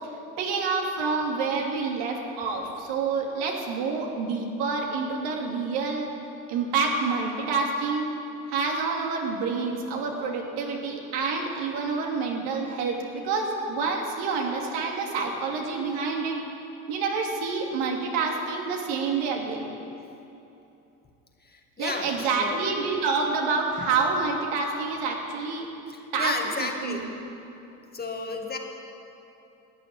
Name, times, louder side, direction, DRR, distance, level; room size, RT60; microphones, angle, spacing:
voice 1, 0.4-6.1 6.5-8.1 8.5-16.4 16.9-19.6 21.8-25.7 26.1-26.3 26.6-27.1, right 4 dB, 70° right, 0 dB, 2.8 m, -28 dB
voice 2, 21.4-22.7 23.8-23.9 25.9-27.1 27.9-28.6, left 3 dB, 25° left, 2 dB, 2.2 m, -33 dB
15.0 x 9.5 x 9.0 m, 2.8 s
supercardioid pair, 80°, 40 cm